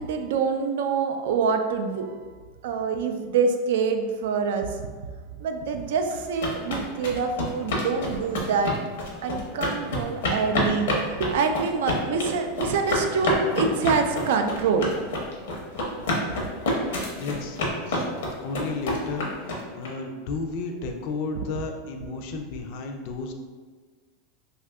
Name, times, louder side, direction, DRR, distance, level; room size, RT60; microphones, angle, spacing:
voice 1, 0.0-2.2 2.6-4.8 5.4-8.7 9.2-14.9 20.8-20.9, right 5 dB, 70° right, 6 dB, 0.3 m, -25 dB
sound 1, 6.1-19.9, left 1 dB, 85° left, 0.8 m, -28 dB
voice 2, 17.2-17.6 17.9-18.1 18.4-23.3, left 4 dB, 45° left, 4 dB, 0.4 m, -33 dB
2.7 x 2.4 x 3.3 m, 1.4 s
supercardioid pair, 165°, 0 cm